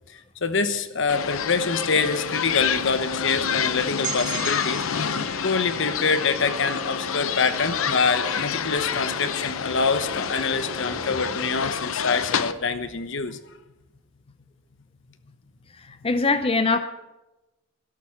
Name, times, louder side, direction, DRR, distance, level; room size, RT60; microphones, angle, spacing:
voice 1, 0.1-4.8 5.4-13.4, left 4 dB, 65° left, 10 dB, 1.1 m, -25 dB
sound 1, 1.1-12.5, left 7 dB, 85° left, 0.7 m, -28 dB
sound 2, 3.1-13.1, right 1 dB, 5° left, 2.2 m, -42 dB
sound 3, 4.0-7.9, right 10 dB, 40° right, 1.1 m, -38 dB
voice 2, 15.8-16.8, left 3 dB, 25° left, 9 dB, 0.6 m, -22 dB
12.5 x 12.0 x 5.8 m, 1.0 s
head